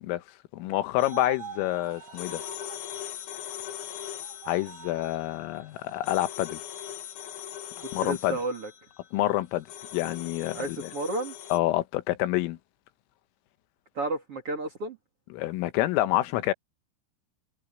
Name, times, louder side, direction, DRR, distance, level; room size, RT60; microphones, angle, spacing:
voice 1, 0.5-2.4 4.5-6.6 7.9-8.4 9.1-9.7 9.9-10.9 11.5-12.6 15.3-16.5, left 16 dB, 85° left, 3.7 m, -27 dB
sound 1, 1.0-11.6, left 10 dB, 70° left, 4.5 m, -41 dB
sound 2, 1.0-2.9 4.2-5.2, right 8 dB, 90° right, 5.5 m, -44 dB
voice 2, 8.0-8.7 10.5-11.3 13.9-15.0, right 2 dB, 35° right, 2.8 m, -32 dB
omnidirectional pair, 5.8 m